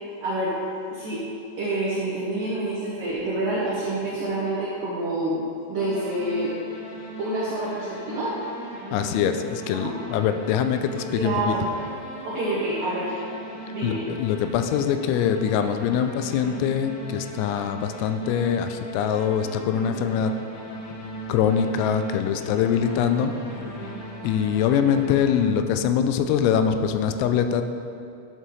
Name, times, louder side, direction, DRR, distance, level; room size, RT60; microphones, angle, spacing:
voice 1, 0.2-0.6 0.9-1.2 1.6-5.4 5.7-6.5 7.2-8.4 9.7-9.8 11.2-11.6 12.2-13.2 13.7-14.0, right 2 dB, 85° right, -7 dB, 1.9 m, -27 dB
sound 1, 5.8-25.5, right 1 dB, 70° left, 2.5 m, -38 dB
voice 2, 8.9-11.5 13.8-20.3 21.3-23.4 24.2-27.6, left 8 dB, 85° left, 8 dB, 3.2 m, -23 dB
12.0 x 7.6 x 3.2 m, 2.6 s
omnidirectional pair, 5.9 m